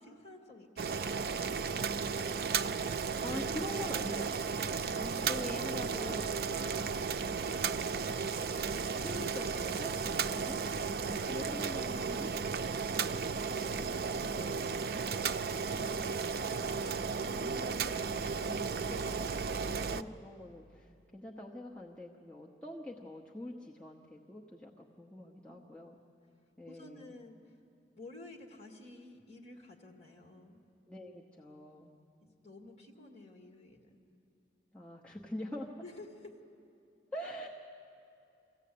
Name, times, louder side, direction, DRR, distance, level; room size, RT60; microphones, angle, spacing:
voice 1, 0.0-2.6 25.5-25.7 26.7-27.6 27.9-30.6 32.2-34.0 35.8-36.4, left 2 dB, 35° left, 1 dB, 2.1 m, -53 dB
Boiling, 0.8-20.0, right 5 dB, 55° right, 0.5 m, -34 dB
voice 2, 3.1-4.7 4.9-7.0 7.5-8.3 8.7-10.7 11.0-13.9 14.2-14.8 15.5-16.2 17.1-26.0 26.6-27.1 30.9-31.9 34.7-35.7 37.1-37.5, left 1 dB, 5° left, -3 dB, 0.9 m, -45 dB
25.0 x 15.0 x 8.6 m, 2.8 s
head